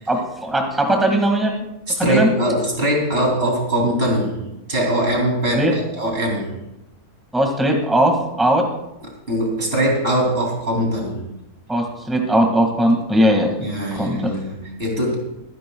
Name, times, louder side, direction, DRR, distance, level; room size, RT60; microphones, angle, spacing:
voice 1, 0.1-1.5 2.0-2.3 5.5-5.7 7.3-8.6 11.7-13.5 14.0-14.3, right 1 dB, ahead, 2 dB, 1.7 m, -18 dB
voice 2, 1.9-4.4 4.7-6.5 9.3-11.2 13.6-15.2, right 1 dB, 40° right, -1 dB, 3.1 m, -21 dB
22.5 x 10.5 x 2.3 m, 0.89 s
omnidirectional pair, 1.7 m